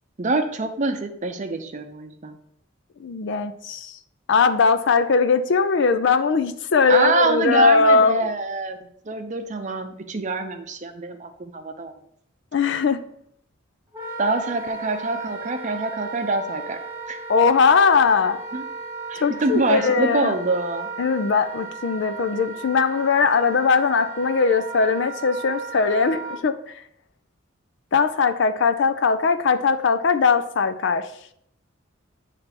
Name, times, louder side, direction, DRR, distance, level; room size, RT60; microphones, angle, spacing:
voice 1, 0.2-2.4 6.9-8.8 9.1-11.9 14.2-16.8 17.1-17.2 18.5-18.6 19.1-20.9, right 3 dB, 35° right, 0.6 m, -25 dB
voice 2, 3.0-4.0 4.3-8.3 12.5-13.0 17.3-18.4 19.2-20.3 21.0-26.6 27.9-31.1, left 5 dB, 60° left, 0.4 m, -20 dB
Wind instrument woodwind instrument, 13.9-26.4, right 4 dB, 10° right, 1.1 m, -35 dB
8.2 x 3.3 x 4.1 m
head